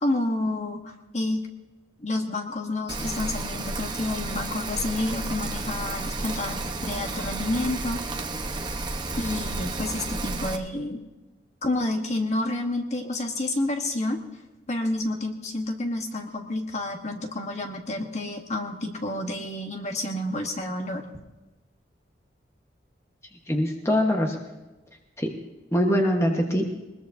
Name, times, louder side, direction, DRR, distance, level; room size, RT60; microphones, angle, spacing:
voice 1, 0.0-1.4 2.0-8.0 9.2-11.0 11.6-14.2 14.7-21.0, left 2 dB, 35° left, 3 dB, 1.3 m, -29 dB
Rain, 2.9-10.6, right 2 dB, 25° right, 1.0 m, -32 dB
voice 2, 23.5-24.4 25.2-25.3 25.7-26.7, equal, 15° left, 1 dB, 1.3 m, -23 dB
21.5 x 21.0 x 2.7 m, 1.1 s
head